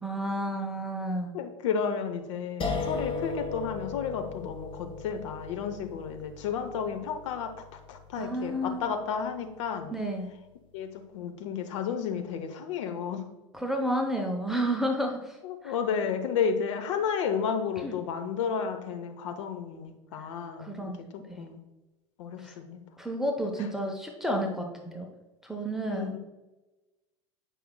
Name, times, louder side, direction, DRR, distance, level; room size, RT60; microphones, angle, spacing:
voice 1, 0.0-1.3 8.1-8.9 9.9-10.3 13.5-15.4 15.6-15.8 17.8-18.0 20.6-21.4 22.4-22.6 23.0-25.1 25.4-26.2, equal, ahead, 1 dB, 0.8 m, -31 dB
voice 2, 1.3-7.5 7.9-9.9 10.7-13.2 15.4-20.9 21.4-21.6 22.2-22.8 25.9-26.2, left 6 dB, 65° left, 7 dB, 0.9 m, -32 dB
sound 1, 2.6-9.5, left 4 dB, 30° left, 1.1 m, -37 dB
8.5 x 5.5 x 2.3 m, 1.1 s
hypercardioid pair, 80°, 17 cm